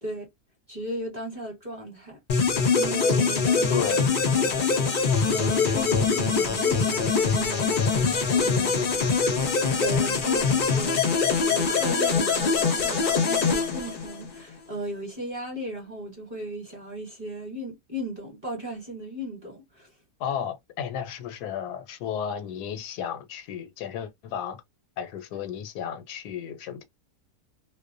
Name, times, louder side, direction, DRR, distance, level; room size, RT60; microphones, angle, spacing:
voice 1, 0.7-3.9 4.3-4.7 5.3-9.1 9.8-19.9, right 1 dB, 30° right, 1.0 m, -36 dB
sound 1, 2.3-14.4, left 5 dB, 55° left, 0.6 m, -23 dB
voice 2, 3.7-4.1 20.2-24.6 25.0-26.8, left 9 dB, 85° left, 1.1 m, -33 dB
2.6 x 2.1 x 2.4 m
omnidirectional pair, 1.7 m